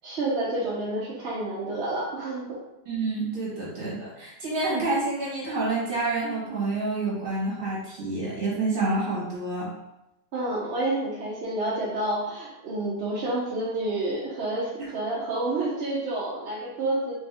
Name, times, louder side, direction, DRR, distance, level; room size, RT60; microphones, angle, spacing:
voice 1, 0.0-2.6 10.3-17.2, right 2 dB, 60° right, -6 dB, 0.7 m, -29 dB
voice 2, 2.9-9.7, right 2 dB, 35° right, -6 dB, 1.3 m, -28 dB
3.4 x 2.6 x 3.3 m, 0.91 s
omnidirectional pair, 1.8 m